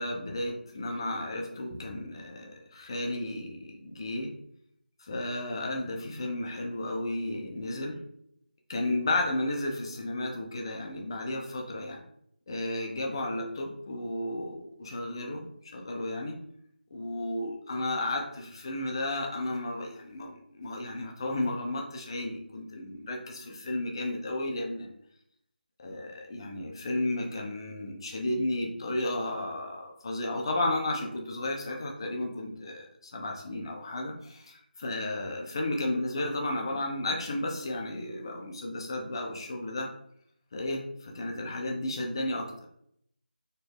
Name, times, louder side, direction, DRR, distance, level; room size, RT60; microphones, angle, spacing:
voice 1, 0.0-4.3 5.0-8.0 8.7-12.0 12.5-16.4 16.9-24.9 25.8-39.9 40.5-42.7, left 1 dB, 30° left, 2 dB, 0.6 m, -33 dB
4.3 x 2.0 x 3.4 m, 0.71 s
figure-of-eight pair, 165°, 5 cm